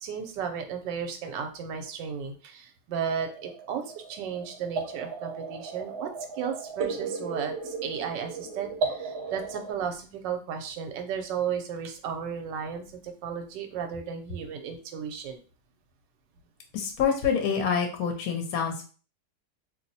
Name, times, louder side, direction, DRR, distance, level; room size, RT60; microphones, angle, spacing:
voice 1, 0.0-6.1 6.4-15.4, right 7 dB, 90° right, 5 dB, 1.3 m, -34 dB
sound 1, 3.0-9.7, right 4 dB, 70° right, 1.1 m, -35 dB
voice 2, 16.7-18.8, left 6 dB, 65° left, 3 dB, 1.0 m, -26 dB
2.9 x 2.0 x 4.0 m, 0.38 s
omnidirectional pair, 1.9 m